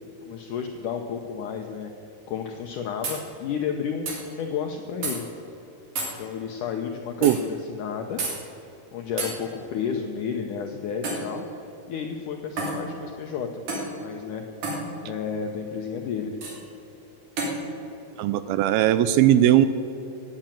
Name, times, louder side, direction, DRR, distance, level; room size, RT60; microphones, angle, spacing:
voice 1, 0.3-1.9 2.3-5.3 6.2-8.2 8.9-11.5 11.9-13.6 14.0-14.4 15.0-16.4, left 7 dB, 80° left, 4 dB, 1.8 m, -31 dB
sound 1, 3.0-3.2 4.1-4.2 5.0-5.2 6.0-6.1 7.2-7.4 8.2-8.4 9.2-9.3 11.0-11.3 12.6-12.8 13.7-13.9 14.6-14.8 16.4-16.6 17.4-17.6, right 3 dB, 50° right, 4.1 m, -29 dB
voice 2, 18.2-19.7, right 12 dB, 80° right, 13 dB, 2.2 m, -18 dB
16.5 x 8.8 x 9.0 m, 3.0 s
omnidirectional pair, 4.7 m